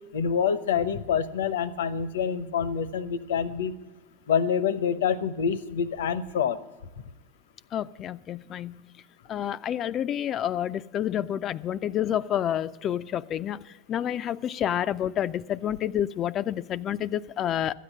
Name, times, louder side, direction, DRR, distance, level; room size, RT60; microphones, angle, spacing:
voice 1, 0.1-3.7 4.3-6.6, left 7 dB, 75° left, 16 dB, 0.7 m, -26 dB
voice 2, 7.7-8.9 9.3-17.7, left 10 dB, 35° left, 15 dB, 0.4 m, -29 dB
13.0 x 8.4 x 8.8 m, 1.2 s
hypercardioid pair, 95°, 0 cm